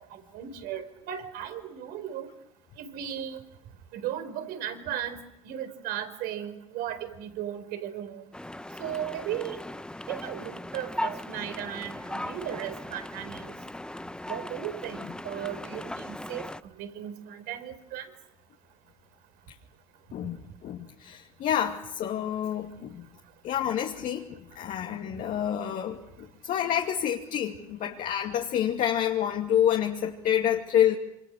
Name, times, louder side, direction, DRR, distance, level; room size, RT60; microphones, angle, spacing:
voice 1, 0.1-2.3 2.8-3.4 3.9-5.2 5.4-8.2 8.8-9.6 10.1-13.5 14.3-16.5 16.8-18.1, right 10 dB, 60° right, 9 dB, 4.6 m, -36 dB
sound 1, 8.3-16.6, left 1 dB, 5° left, 1.0 m, -38 dB
voice 2, 20.6-23.1 23.4-31.0, left 10 dB, 50° left, 2 dB, 2.5 m, -28 dB
27.5 x 26.5 x 6.5 m, 0.84 s
hypercardioid pair, 75°, 18 cm